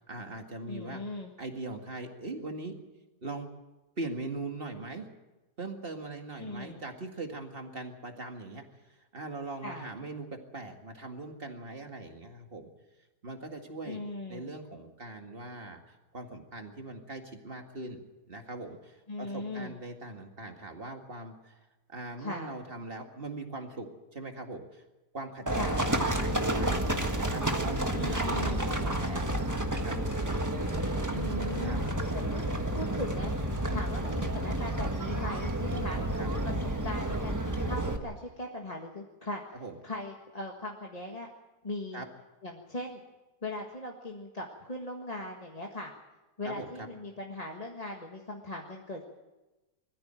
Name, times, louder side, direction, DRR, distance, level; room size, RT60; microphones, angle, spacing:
voice 1, 0.1-1.0 1.4-2.7 3.2-3.5 4.0-5.1 5.6-8.6 9.1-10.3 10.5-12.7 13.2-14.0 14.3-21.6 21.9-24.8 25.1-26.8 27.1-29.3 29.7-30.2 31.6-31.9 35.9-36.3 39.5-39.8 41.9-42.1 46.4-46.9, right 2 dB, 35° right, 4 dB, 2.2 m, -41 dB
voice 2, 0.7-1.3 6.4-6.8 9.6-9.9 13.8-14.5 19.1-19.7 22.2-22.6 25.5-25.9 27.9-28.7 31.1-32.4 32.7-33.3 33.7-36.0 36.4-39.4 39.8-41.3 41.6-42.0 42.4-43.0 43.4-45.9 46.4-49.0, left 2 dB, 25° left, 0 dB, 1.7 m, -39 dB
Livestock farm animals working animals, 25.5-38.0, right 1 dB, 10° right, 1.3 m, -30 dB
21.5 x 14.5 x 9.0 m, 1.1 s
omnidirectional pair, 1.8 m